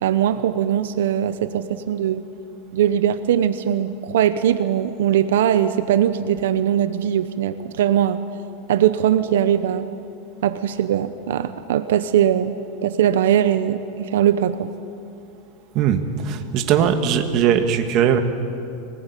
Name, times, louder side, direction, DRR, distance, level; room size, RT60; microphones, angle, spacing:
voice 1, 0.0-2.2 2.7-8.2 8.7-9.9 10.4-12.5 12.8-14.7, right 10 dB, 85° right, 11 dB, 0.9 m, -20 dB
voice 2, 15.7-18.2, right 8 dB, 35° right, 6 dB, 1.7 m, -19 dB
24.0 x 19.5 x 8.4 m, 2.6 s
supercardioid pair, 160°, 0 cm